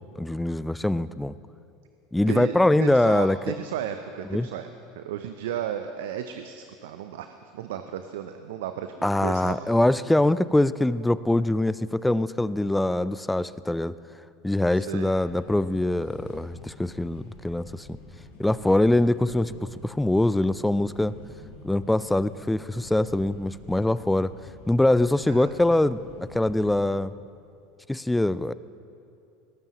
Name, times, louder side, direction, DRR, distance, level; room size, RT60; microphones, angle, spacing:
voice 1, 0.0-1.4 2.1-3.4 4.3-4.5 9.0-13.9 14.4-18.0 18.4-19.6 19.8-21.2 21.6-24.3 24.7-27.1 27.9-28.5, left 1 dB, 5° left, 16 dB, 0.4 m, -23 dB
voice 2, 2.3-4.7 4.9-9.7 14.7-15.1 25.3-25.5, right 9 dB, 70° right, 8 dB, 0.6 m, -34 dB
sound 1, 15.1-27.0, left 3 dB, 75° left, 4.3 m, -47 dB
20.5 x 17.5 x 3.1 m, 2.6 s
hypercardioid pair, 80°, 0 cm